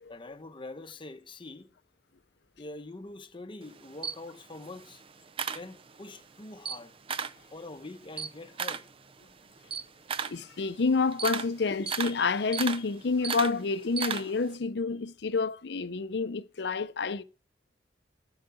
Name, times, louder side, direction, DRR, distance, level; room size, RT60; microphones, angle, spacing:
voice 1, 0.1-1.7 2.6-5.0 5.5-7.0 7.5-8.9, left 2 dB, 30° left, 0.9 m, -44 dB
Camera, 3.6-6.2 6.5-7.5 7.8-14.5, right 6 dB, 30° right, 0.5 m, -35 dB
voice 2, 10.2-17.2, left 4 dB, 70° left, 0.6 m, -29 dB
11.5 x 5.8 x 6.9 m
head